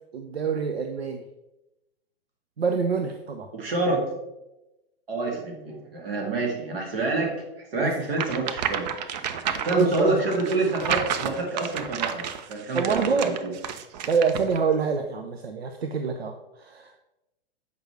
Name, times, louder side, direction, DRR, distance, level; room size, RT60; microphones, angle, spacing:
voice 1, 0.1-1.2 2.6-3.5 7.8-8.0 9.7-10.2 12.7-13.4 14.1-16.9, right 5 dB, 90° right, 6 dB, 0.6 m, -26 dB
voice 2, 3.5-4.0 5.1-7.3 7.7-8.9 9.5-13.3, right 2 dB, 70° right, 1 dB, 2.1 m, -27 dB
sound 1, 8.1-14.6, right 8 dB, 45° right, 0.6 m, -31 dB
7.9 x 5.2 x 3.2 m, 0.95 s
hypercardioid pair, 110°, 30 cm